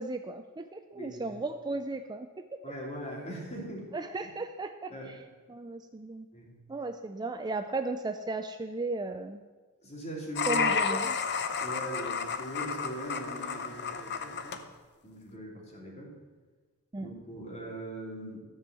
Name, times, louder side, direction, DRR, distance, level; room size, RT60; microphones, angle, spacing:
voice 1, 0.0-2.6 3.9-4.9 5.5-6.3 6.7-9.4 10.5-11.2 16.9-17.1, right 3 dB, 20° right, 7 dB, 0.4 m, -35 dB
voice 2, 0.9-1.4 2.6-3.9 4.2-4.3 4.9-5.2 6.3-6.6 9.8-10.6 11.6-14.6 15.0-16.1 17.0-18.4, right 1 dB, 30° left, -1 dB, 2.7 m, -40 dB
sound 1, 10.4-14.6, left 6 dB, 50° left, 0.7 m, -31 dB
13.5 x 5.3 x 7.6 m, 1.3 s
head